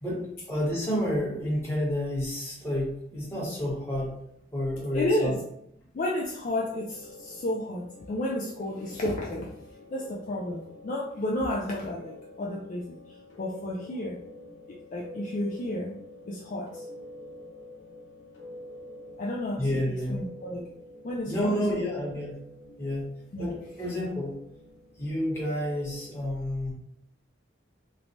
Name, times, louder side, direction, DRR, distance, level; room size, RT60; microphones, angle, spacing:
voice 1, 0.0-4.2 4.5-5.4 19.6-20.2 21.2-22.4 22.8-23.1 23.4-24.4 25.0-26.7, equal, 15° left, -6 dB, 1.0 m, -30 dB
voice 2, 4.9-5.4 5.9-9.5 9.9-14.2 14.7-16.0 16.3-16.9 19.2-19.7 20.1-20.6 21.0-21.8 23.3-23.5, left 1 dB, 40° left, -3 dB, 0.3 m, -32 dB
sound 1, 6.5-26.2, left 1 dB, 60° left, 0.8 m, -48 dB
3.1 x 2.1 x 2.6 m, 0.72 s
head